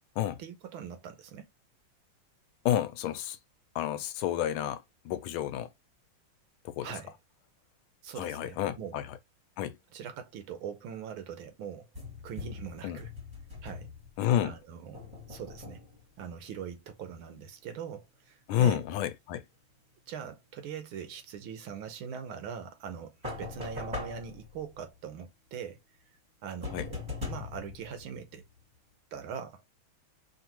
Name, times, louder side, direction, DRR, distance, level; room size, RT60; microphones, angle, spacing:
voice 1, 0.4-1.5 6.8-7.1 8.0-9.0 9.9-11.9 12.2-13.1 13.6-13.9 14.4-15.8 16.2-18.8 20.1-23.1 23.4-25.8 26.4-27.0 27.3-28.5 29.1-29.6, right 7 dB, 80° right, 1.7 m, -42 dB
voice 2, 2.6-3.4 3.7-5.7 6.6-6.9 8.2-9.0 9.6-9.8 12.8-13.0 14.2-14.5 18.5-19.4 26.7-26.9, left 11 dB, 85° left, 1.4 m, -30 dB
sound 1, 11.9-14.4 14.9-16.1 23.2-24.9 26.6-28.6, left 3 dB, 15° right, 1.3 m, -41 dB
5.1 x 2.8 x 2.9 m
omnidirectional pair, 2.3 m